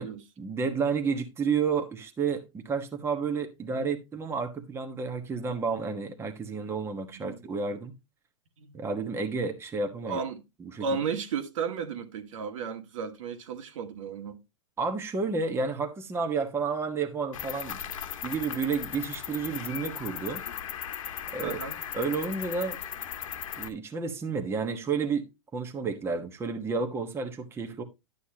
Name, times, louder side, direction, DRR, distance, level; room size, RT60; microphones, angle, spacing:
voice 1, 0.4-7.9 8.7-10.2 10.6-10.9 14.8-17.8 18.2-20.4 21.3-21.6 21.9-22.8 23.6-27.8, right 5 dB, 15° right, 1.2 m, -31 dB
voice 2, 10.0-10.4 10.8-14.4 21.4-21.7, right 6 dB, 70° right, 2.0 m, -34 dB
Cricket, 17.3-23.7, left 9 dB, 80° left, 1.5 m, -37 dB
11.5 x 8.3 x 2.8 m
hypercardioid pair, 135°, 17 cm